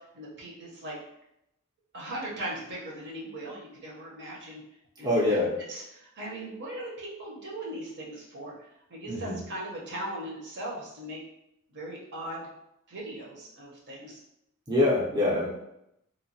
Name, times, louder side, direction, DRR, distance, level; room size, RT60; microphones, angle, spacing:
voice 1, 0.1-1.0 1.9-4.6 5.0-5.4 5.7-11.2 11.7-12.5 12.9-14.2, right 1 dB, 55° right, -2 dB, 0.7 m, -39 dB
voice 2, 5.0-5.5 9.1-9.4 14.7-15.5, left 2 dB, 20° right, -6 dB, 0.5 m, -25 dB
3.0 x 2.1 x 2.6 m, 0.82 s
head